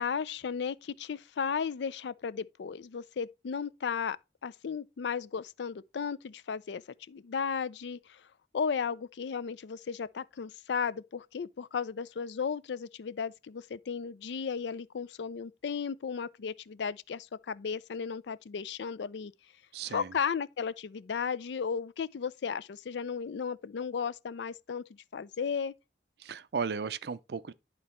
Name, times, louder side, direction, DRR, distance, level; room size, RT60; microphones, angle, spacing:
voice 1, 0.0-4.2 4.4-6.8 7.1-8.2 8.5-19.3 19.9-24.8 25.1-25.7, left 6 dB, 75° left, 0.4 m, -35 dB
voice 2, 19.7-20.1 26.2-27.5, right 5 dB, 60° right, 0.5 m, -35 dB
10.5 x 3.9 x 4.2 m
head